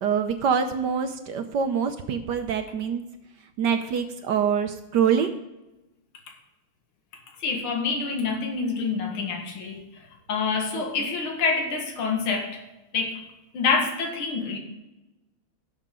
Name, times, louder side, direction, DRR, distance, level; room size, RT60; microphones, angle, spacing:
voice 1, 0.0-3.0 3.6-5.3 10.7-11.1, right 7 dB, 65° right, 7 dB, 1.2 m, -25 dB
voice 2, 7.4-12.6 12.9-13.2 13.5-14.6, left 4 dB, 70° left, 2 dB, 2.5 m, -27 dB
17.0 x 6.7 x 3.8 m, 1.0 s
omnidirectional pair, 2.4 m